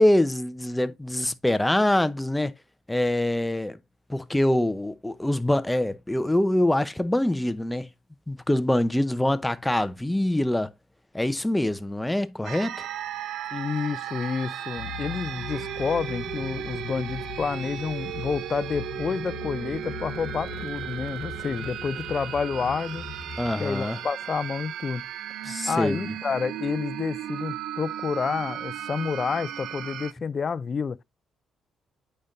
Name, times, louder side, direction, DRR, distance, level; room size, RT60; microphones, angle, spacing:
voice 1, 0.0-2.5 2.9-3.8 4.1-7.9 8.3-10.7 11.1-12.9 23.4-24.0 25.4-26.1, left 1 dB, 10° left, 0.7 m, -24 dB
sound 1, 12.4-30.1, right 11 dB, 75° right, 0.4 m, -36 dB
voice 2, 13.5-23.1 23.6-25.0 25.4-31.0, left 5 dB, 40° left, 0.4 m, -29 dB
sound 2, 14.8-23.5, left 8 dB, 70° left, 1.2 m, -40 dB
8.6 x 5.4 x 2.5 m
cardioid pair, 90°, 0 cm